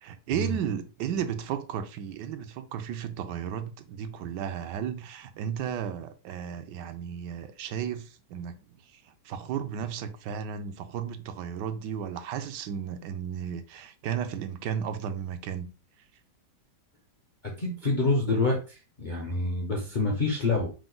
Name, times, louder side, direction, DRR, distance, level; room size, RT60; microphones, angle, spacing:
voice 1, 0.0-8.6 8.9-15.7, right 8 dB, 85° right, 1.2 m, -34 dB
voice 2, 17.6-20.7, left 2 dB, 55° left, 0.5 m, -27 dB
4.8 x 2.1 x 3.8 m
omnidirectional pair, 1.8 m